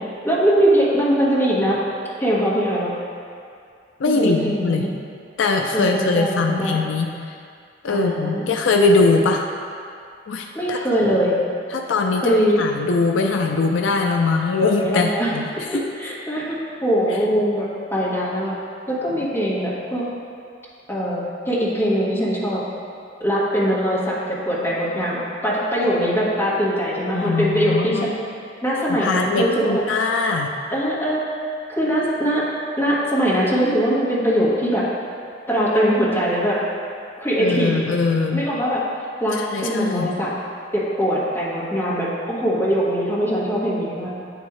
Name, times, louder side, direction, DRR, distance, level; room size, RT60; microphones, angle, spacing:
voice 1, 0.0-1.8 2.2-2.9 4.0-4.9 5.7-6.8 7.9-8.5 10.5-11.3 12.2-12.6 14.6-15.6 16.0-18.5 18.9-20.0 20.9-21.2 21.5-22.6 23.2-28.1 28.6-29.8 30.7-31.2 31.7-32.4 32.8-34.8 35.5-36.6 37.2-37.8 38.3-38.8 39.2-40.3 40.7-44.1, equal, 15° left, -9 dB, 1.4 m, -21 dB
voice 2, 4.0-4.9 5.4-7.1 7.8-9.5 10.3-10.8 11.7-15.5 27.1-28.1 29.0-30.5 37.4-38.4 39.3-40.1, left 3 dB, 85° left, 3 dB, 0.4 m, -21 dB
9.5 x 3.6 x 3.2 m, 2.4 s
head